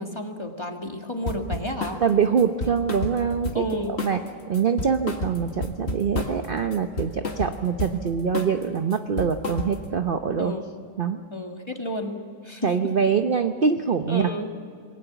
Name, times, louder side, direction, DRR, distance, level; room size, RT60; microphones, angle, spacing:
voice 1, 0.0-2.0 3.5-3.9 10.4-10.7 11.3-12.8 14.1-14.5, equal, 15° left, 3 dB, 1.8 m, -31 dB
sound 1, 1.3-2.0 2.4-3.7 4.0-4.3 4.5-6.5 6.7-8.0 8.3-8.6 8.9-9.9, left 2 dB, 40° left, 1.9 m, -31 dB
voice 2, 2.0-3.6 3.9-4.2 4.5-10.5 11.0-11.2 12.6-14.3, right 6 dB, 45° right, 7 dB, 0.7 m, -24 dB
27.0 x 20.0 x 7.0 m, 2.3 s
omnidirectional pair, 1.8 m